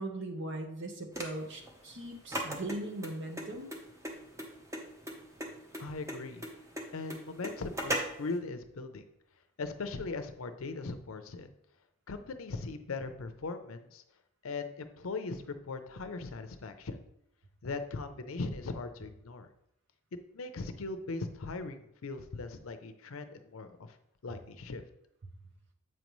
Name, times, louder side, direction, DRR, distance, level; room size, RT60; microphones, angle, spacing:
voice 1, 0.0-3.7, right 1 dB, 60° right, 4 dB, 1.0 m, -39 dB
sound 1, 1.1-8.3, right 1 dB, 15° right, 0.8 m, -38 dB
voice 2, 5.8-6.5 6.9-9.0 9.6-11.5 12.1-14.0 14.4-17.0 17.6-19.5 20.3-23.9 24.2-24.8, left 3 dB, 75° left, 8 dB, 0.6 m, -39 dB
7.7 x 5.3 x 3.1 m, 0.78 s
head